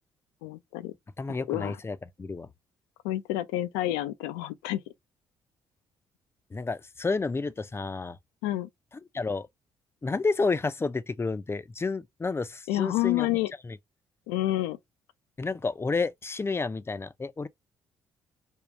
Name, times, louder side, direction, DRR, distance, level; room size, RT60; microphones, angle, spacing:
voice 1, 0.4-0.9 1.5-1.8 3.0-4.8 8.4-8.7 12.7-13.5 14.3-14.8, left 15 dB, 85° left, 0.4 m, -29 dB
voice 2, 1.2-2.5 6.5-8.2 9.1-9.5 10.0-13.4 13.6-13.8 15.4-17.5, left 4 dB, 25° left, 0.5 m, -30 dB
3.6 x 2.3 x 2.9 m
hypercardioid pair, 55°, 11 cm